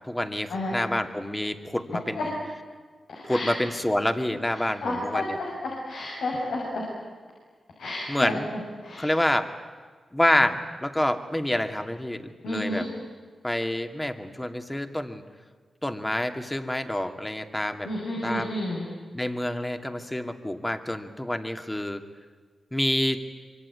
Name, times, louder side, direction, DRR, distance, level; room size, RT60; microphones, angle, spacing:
voice 1, 0.0-2.3 3.2-5.4 8.1-8.5 9.0-9.5 10.1-12.9 13.4-15.2 15.8-17.9 18.2-18.5 19.1-22.0 22.7-23.2, left 1 dB, 15° left, 7 dB, 2.5 m, -27 dB
voice 2, 3.1-3.5 4.5-5.5 5.9-6.8 7.8-8.4 8.8-9.1 12.4-12.9 17.8-18.9, left 1 dB, 85° left, -3 dB, 6.5 m, -31 dB
25.0 x 24.0 x 9.9 m, 1.5 s
cardioid pair, 50°, 0 cm